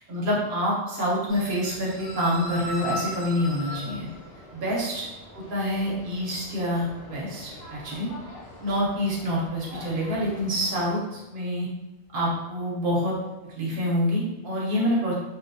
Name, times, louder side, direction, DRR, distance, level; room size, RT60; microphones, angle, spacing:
voice 1, 0.1-4.1 4.5-5.1 5.3-8.1 8.6-11.7 12.1-13.1 13.6-15.1, equal, 55° right, -5 dB, 0.8 m, -27 dB
sound 1, 1.3-10.9, left 1 dB, 65° left, 0.8 m, -40 dB
2.2 x 2.1 x 2.5 m, 1.0 s
omnidirectional pair, 1.3 m